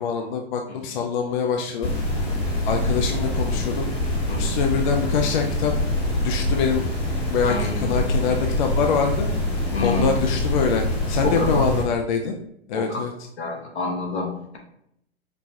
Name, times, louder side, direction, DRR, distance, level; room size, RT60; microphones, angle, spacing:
voice 1, 0.0-1.9 2.7-3.9 4.4-5.7 6.2-6.9 7.3-9.3 9.8-12.4 12.7-13.1, left 6 dB, 45° left, 3 dB, 0.4 m, -24 dB
sound 1, 1.8-11.8, left 1 dB, 15° left, 0.9 m, -25 dB
voice 2, 7.5-8.1 9.7-10.1 11.2-11.7 12.7-13.0 13.4-14.6, left 3 dB, 75° left, 0 dB, 1.2 m, -28 dB
4.9 x 2.2 x 2.7 m, 0.74 s
hypercardioid pair, 120°, 33 cm